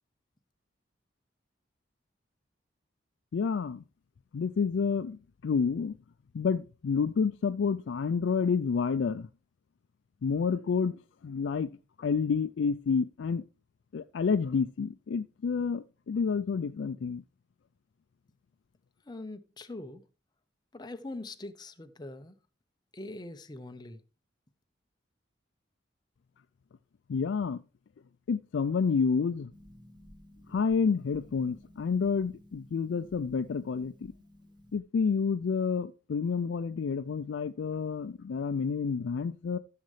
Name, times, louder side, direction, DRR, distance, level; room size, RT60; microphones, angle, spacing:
voice 1, 3.3-3.8 4.3-5.9 6.3-9.3 10.2-11.7 12.0-13.4 13.9-17.2 27.1-27.6 28.3-29.5 30.5-34.1 34.7-39.6, left 5 dB, 75° left, 0.4 m, -29 dB
voice 2, 19.0-20.0 20.7-22.4 22.9-24.0, left 2 dB, 20° left, 0.7 m, -42 dB
Harp, 29.5-34.8, left 1 dB, 25° right, 1.0 m, -55 dB
14.5 x 6.6 x 3.2 m
head